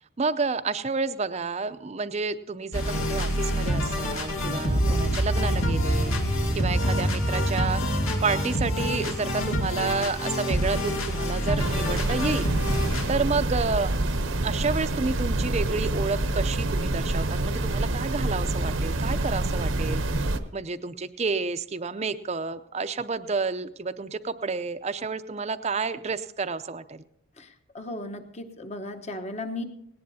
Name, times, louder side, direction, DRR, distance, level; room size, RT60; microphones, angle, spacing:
voice 1, 0.2-7.8 8.2-12.5 13.1-14.0 14.4-27.0, right 4 dB, 30° right, 12 dB, 0.5 m, -30 dB
sound 1, 2.7-13.1, equal, 85° left, 2.6 m, -28 dB
sound 2, 4.6-10.7, right 1 dB, 65° left, 2.3 m, -28 dB
sound 3, 11.6-20.4, right 2 dB, 70° right, 0.9 m, -27 dB
voice 2, 27.7-29.6, left 1 dB, 35° left, 6 dB, 1.0 m, -36 dB
18.5 x 18.0 x 2.8 m, 0.78 s
head